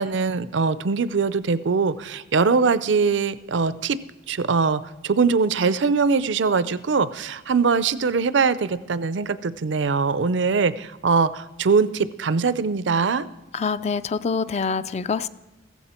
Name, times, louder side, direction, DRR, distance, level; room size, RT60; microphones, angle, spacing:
voice 1, 0.0-4.0 4.3-13.2, right 5 dB, 75° right, 16 dB, 0.5 m, -22 dB
voice 2, 13.5-15.3, left 5 dB, 35° left, 14 dB, 0.4 m, -25 dB
15.0 x 14.5 x 4.4 m, 1.1 s
head